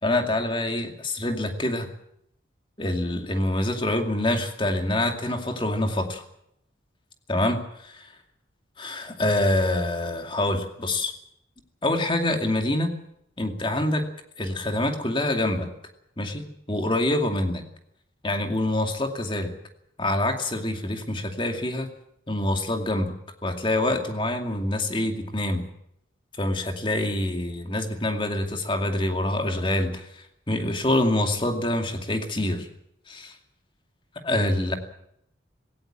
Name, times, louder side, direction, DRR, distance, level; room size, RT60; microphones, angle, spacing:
voice 1, 0.0-1.9 2.8-6.2 7.3-8.1 8.8-11.1 11.8-12.9 13.4-14.0 14.4-15.7 16.2-17.6 18.2-19.5 20.0-21.9 22.3-23.1 23.4-25.6 26.4-32.7 33.1-33.4 34.2-34.8, left 1 dB, 25° left, 5 dB, 2.3 m, -26 dB
18.0 x 17.5 x 8.9 m, 0.73 s
head